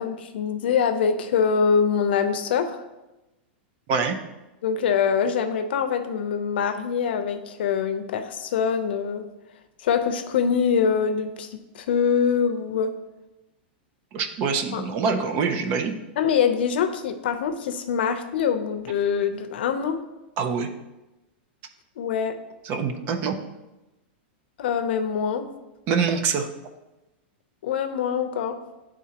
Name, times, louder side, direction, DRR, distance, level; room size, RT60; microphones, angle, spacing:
voice 1, 0.0-2.8 4.6-9.3 9.8-12.9 14.7-14.8 16.2-20.0 22.0-22.4 24.6-25.5 27.6-28.6, left 7 dB, 70° left, 8 dB, 0.6 m, -24 dB
voice 2, 14.1-15.9 20.4-20.7 22.6-23.4 25.9-26.5, right 5 dB, 30° right, 6 dB, 0.5 m, -25 dB
10.0 x 3.6 x 2.9 m, 1.0 s
supercardioid pair, 170°, 6 cm